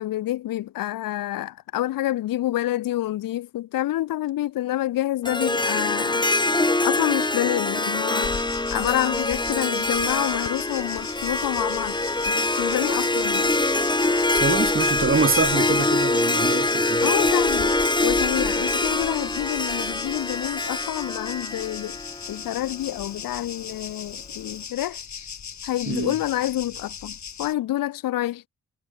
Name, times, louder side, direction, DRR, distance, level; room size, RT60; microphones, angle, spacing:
voice 1, 0.0-6.2 6.8-8.4 8.7-12.0 12.2-13.5 17.0-22.0 22.3-25.0 25.6-28.5, left 14 dB, 80° left, 2.8 m, -28 dB
Harp, 5.2-22.5, left 2 dB, 15° left, 1.5 m, -24 dB
sound 1, 8.2-27.5, left 7 dB, 55° left, 7.6 m, -38 dB
voice 2, 14.4-17.1 25.9-26.1, right 4 dB, 40° right, 6.0 m, -25 dB
supercardioid pair, 55°, 33 cm